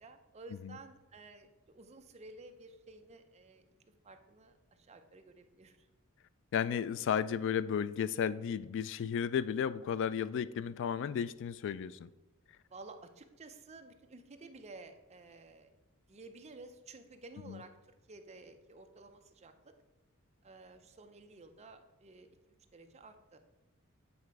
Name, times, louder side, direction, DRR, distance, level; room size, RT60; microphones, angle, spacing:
voice 1, 0.0-3.6 4.0-5.9 12.7-15.7 16.1-17.7 18.1-19.7 20.4-22.3 22.7-23.4, right 3 dB, 30° right, 0.5 m, -53 dB
voice 2, 6.5-12.1 17.5-17.6, left 8 dB, 55° left, 0.3 m, -33 dB
8.7 x 4.2 x 4.7 m
head